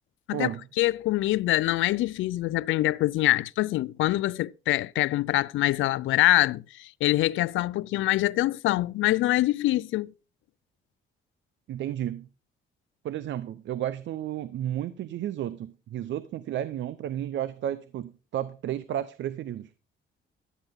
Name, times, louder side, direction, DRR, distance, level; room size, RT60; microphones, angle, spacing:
voice 1, 0.8-10.1, left 16 dB, 80° left, 0.4 m, -24 dB
voice 2, 11.7-12.3 13.0-19.7, right 11 dB, 70° right, 0.6 m, -32 dB
12.0 x 9.0 x 3.6 m
cardioid pair, 90°, 20 cm